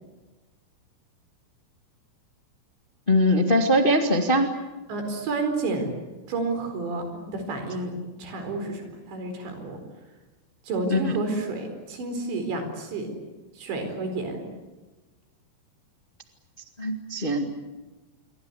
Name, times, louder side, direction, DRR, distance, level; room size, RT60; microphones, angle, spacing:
voice 1, 3.1-4.5 10.9-11.1 16.8-17.5, equal, 70° left, 4 dB, 0.5 m, -21 dB
voice 2, 4.9-5.9 6.3-9.8 10.6-13.1 13.6-14.4, right 3 dB, 90° right, 6 dB, 6.7 m, -30 dB
27.5 x 23.5 x 8.3 m, 1.2 s
omnidirectional pair, 5.0 m